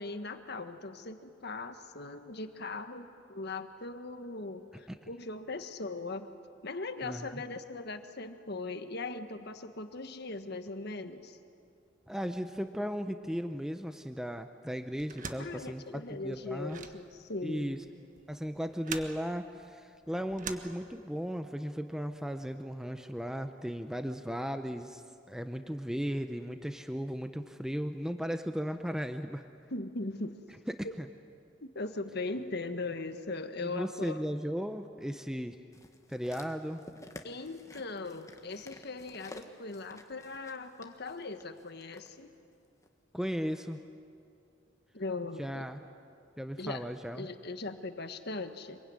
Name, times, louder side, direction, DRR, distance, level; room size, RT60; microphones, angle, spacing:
voice 1, 0.0-6.3 6.6-11.4 15.4-17.8 29.7-30.4 30.8-30.9 31.6-34.3 37.2-42.3 44.9-45.7 46.6-46.8 47.1-48.8, left 3 dB, 60° left, 8 dB, 1.5 m, -39 dB
voice 2, 7.0-7.4 12.1-16.8 17.4-17.8 18.3-25.0 25.3-29.5 30.7-31.1 33.6-35.6 36.1-36.8 43.1-43.8 45.4-45.8 46.4-47.3, equal, 5° right, 7 dB, 0.8 m, -36 dB
sound 1, 15.0-21.3, right 5 dB, 45° right, 1.5 m, -45 dB
sound 2, 35.7-42.1 42.8-42.9, left 1 dB, 15° left, 1.6 m, -52 dB
26.0 x 23.0 x 9.7 m, 2.4 s
head